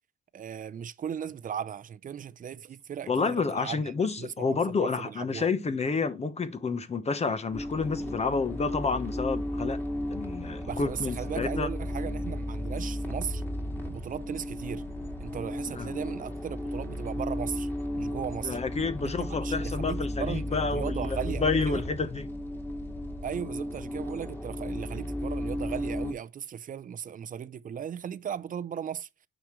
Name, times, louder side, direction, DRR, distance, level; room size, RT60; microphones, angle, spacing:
voice 1, 0.3-5.5 10.6-13.4 13.9-14.8 15.2-18.6 19.0-21.8 23.2-29.1, right 8 dB, 45° right, 0.6 m, -37 dB
voice 2, 3.1-9.8 10.1-11.7 15.8-15.9 18.4-22.3, left 4 dB, 35° left, 0.9 m, -29 dB
sound 1, 7.5-26.1, left 1 dB, 10° left, 2.2 m, -34 dB
9.0 x 5.1 x 3.1 m
cardioid pair, 90°, 20 cm